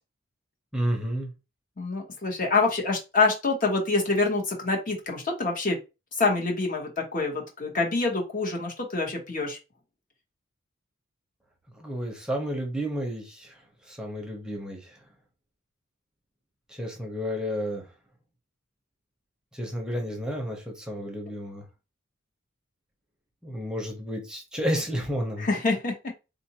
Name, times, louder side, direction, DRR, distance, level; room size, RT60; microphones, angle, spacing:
voice 1, 0.7-1.3 11.8-13.5 13.9-14.9 16.7-17.8 19.5-21.6 23.4-25.5, equal, 5° right, 1 dB, 0.7 m, -31 dB
voice 2, 1.8-5.8 6.2-9.6 25.4-25.9, left 3 dB, 45° left, 1 dB, 1.0 m, -26 dB
3.9 x 2.5 x 2.8 m, 0.28 s
head